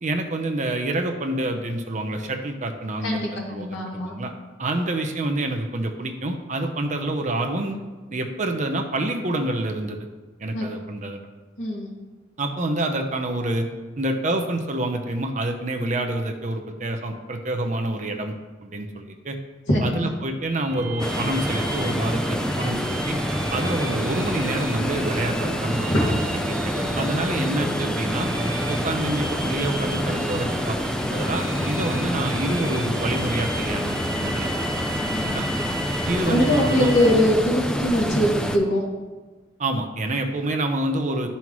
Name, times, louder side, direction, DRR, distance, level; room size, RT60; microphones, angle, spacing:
voice 1, 0.0-3.2 3.5-4.3 4.6-7.8 8.1-10.1 10.4-11.3 12.4-13.7 14.0-18.3 18.6-19.4 19.8-23.2 23.5-26.1 26.5-28.3 28.7-33.9 34.2-34.5 35.2-35.4 36.1-37.0 39.6-41.3, right 1 dB, 40° right, 4 dB, 0.7 m, -27 dB
voice 2, 3.0-4.2 10.5-10.7 11.6-11.9 19.7-20.1 25.9-26.1 35.1-35.4 36.3-38.8, left 1 dB, 70° left, -3 dB, 2.1 m, -22 dB
sound 1, 20.4-37.2, right 1 dB, 20° right, 1.2 m, -33 dB
sound 2, 21.0-38.6, equal, 5° left, 0.4 m, -27 dB
12.5 x 5.6 x 3.1 m, 1.3 s
head